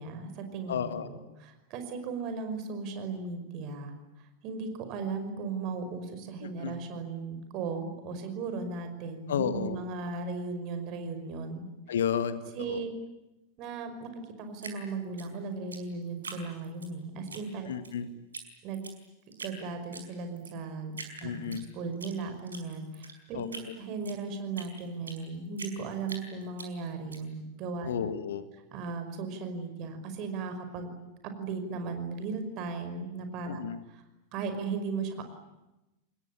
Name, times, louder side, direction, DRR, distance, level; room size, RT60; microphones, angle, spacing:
voice 1, 0.0-3.9 4.4-11.7 12.5-12.9 13.6-17.7 18.6-18.9 19.4-20.9 21.2-27.9 28.7-30.9 31.4-33.6 33.9-34.0 34.3-35.2, right 4 dB, 40° right, 7 dB, 5.4 m, -36 dB
voice 2, 0.7-1.1 6.4-6.8 9.3-9.8 11.9-12.8 17.7-18.1 21.2-21.6 23.3-23.7 27.8-28.5 33.5-33.8, left 8 dB, 60° left, 12 dB, 1.8 m, -32 dB
Drip, 14.6-16.9 17.3-17.9 18.3-18.5 18.7-19.6 19.9-20.5 20.9-22.1 22.5-25.2 25.6-27.2, right 4 dB, 75° right, 5.0 m, -43 dB
27.0 x 21.0 x 10.0 m, 0.97 s
figure-of-eight pair, 90°, 0 cm